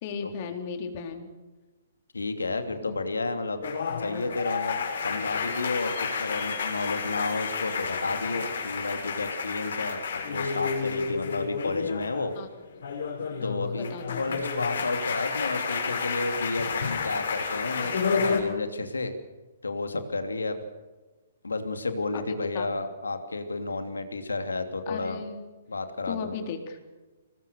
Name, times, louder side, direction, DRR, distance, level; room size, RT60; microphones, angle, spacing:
voice 1, 0.0-1.3 2.8-3.0 12.4-12.5 13.4-14.4 22.1-22.7 24.9-25.4 26.1-26.8, left 6 dB, 45° left, 5 dB, 3.9 m, -36 dB
voice 2, 2.1-3.6 4.0-4.8 5.0-12.3 13.4-13.9 14.1-19.1 19.6-20.6 21.4-25.2 25.7-26.3, left 3 dB, 85° left, 7 dB, 2.9 m, -31 dB
sound 1, 3.6-12.4 12.7-18.4, left 5 dB, 65° left, 6.6 m, -31 dB
25.0 x 20.5 x 6.8 m, 1.2 s
figure-of-eight pair, 125°, 0 cm